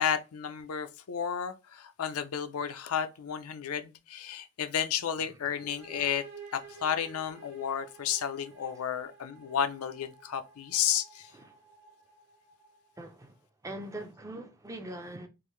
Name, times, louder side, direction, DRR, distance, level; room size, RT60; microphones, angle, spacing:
voice 1, 0.0-6.2 6.5-11.3, left 8 dB, 80° left, 0.5 m, -32 dB
sound 1, 5.6-13.2, right 5 dB, 50° right, 0.9 m, -53 dB
voice 2, 13.0-13.3 13.6-15.3, right 1 dB, 15° right, 0.4 m, -41 dB
3.7 x 2.5 x 3.1 m
head